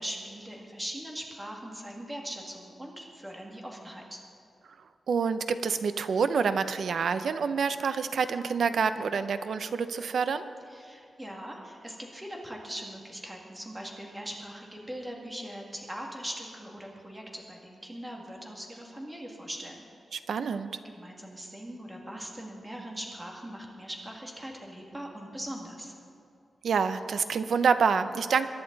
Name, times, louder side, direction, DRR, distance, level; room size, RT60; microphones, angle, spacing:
voice 1, 0.0-4.2 10.7-19.8 20.8-25.9, equal, 10° right, 0 dB, 2.2 m, -41 dB
voice 2, 5.1-10.4 20.1-20.7 26.6-28.5, right 5 dB, 70° right, 11 dB, 0.7 m, -27 dB
22.5 x 11.0 x 4.0 m, 2.6 s
wide cardioid pair, 135°, 0 cm